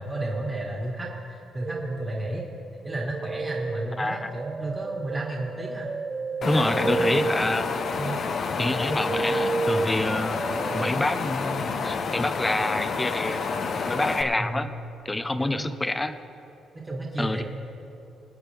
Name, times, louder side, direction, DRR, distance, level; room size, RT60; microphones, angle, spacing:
voice 1, 0.0-2.4 2.8-5.9 6.4-7.3 8.0-8.2 14.4-14.7 15.4-15.7 16.7-17.4, right 2 dB, 15° right, -3 dB, 1.8 m, -32 dB
sound 1, 1.6-2.3 2.8-10.9, right 3 dB, 35° right, 0.4 m, -32 dB
voice 2, 4.0-4.3 6.5-7.6 8.6-10.4 10.7-14.7 15.0-16.1 17.2-17.4, left 2 dB, 15° left, 11 dB, 0.7 m, -27 dB
Wind, 6.4-14.2, left 5 dB, 55° left, 0.9 m, -29 dB
24.5 x 8.7 x 3.5 m, 3.0 s
cardioid pair, 90°, 0 cm